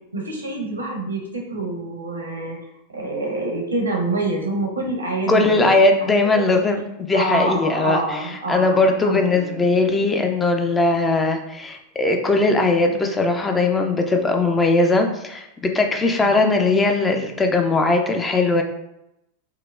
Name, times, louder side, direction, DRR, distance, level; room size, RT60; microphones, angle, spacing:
voice 1, 0.1-2.6 2.9-5.8 6.3-6.6 7.1-10.0 16.2-16.4, right 2 dB, 80° right, -1 dB, 0.8 m, -27 dB
voice 2, 5.3-8.2 8.5-18.6, left 2 dB, 15° left, 4 dB, 0.4 m, -19 dB
4.6 x 2.0 x 2.3 m, 0.84 s
figure-of-eight pair, 90°, 0 cm